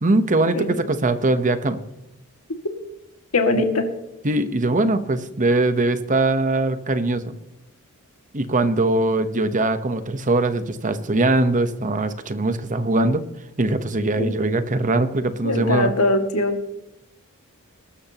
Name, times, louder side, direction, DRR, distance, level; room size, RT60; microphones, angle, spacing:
voice 1, 0.0-1.8 4.2-7.3 8.3-13.2 13.6-15.9, right 2 dB, 35° right, 11 dB, 1.0 m, -21 dB
voice 2, 3.3-3.9 14.2-14.3 15.4-16.7, left 2 dB, 85° left, 5 dB, 2.3 m, -21 dB
21.5 x 12.5 x 3.0 m, 0.89 s
head